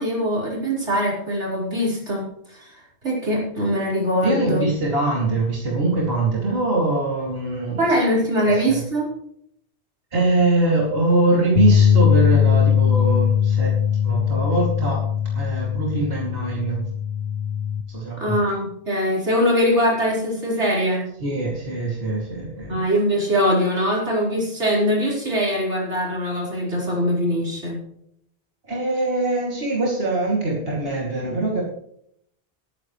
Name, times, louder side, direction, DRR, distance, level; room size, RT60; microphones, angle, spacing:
voice 1, 0.0-2.7 3.0-4.7 7.8-9.1 18.2-21.1 22.7-27.8, equal, 90° right, -4 dB, 5.1 m, -22 dB
voice 2, 4.2-7.8 8.4-8.8 10.1-13.8 14.0-15.0 15.3-16.8 17.9-18.3 21.2-22.8 28.7-31.6, right 2 dB, 60° right, -3 dB, 3.0 m, -23 dB
sound 1, 11.6-17.8, left 8 dB, 70° left, 1.3 m, -20 dB
20.0 x 10.0 x 3.2 m, 0.70 s
omnidirectional pair, 1.2 m